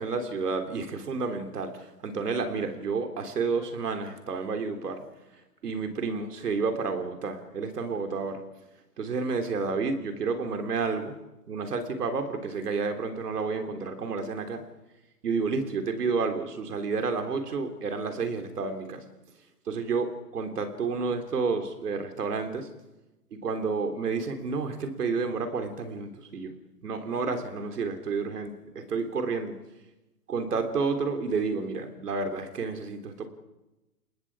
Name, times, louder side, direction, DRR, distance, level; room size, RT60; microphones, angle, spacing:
voice 1, 0.0-5.0 5.6-8.4 9.0-11.1 11.5-14.6 15.2-19.1 19.7-22.7 23.3-26.5 26.8-29.5 30.3-33.3, right 4 dB, 75° right, 6 dB, 3.4 m, -30 dB
30.0 x 19.5 x 4.8 m, 1.0 s
hypercardioid pair, 135°, 47 cm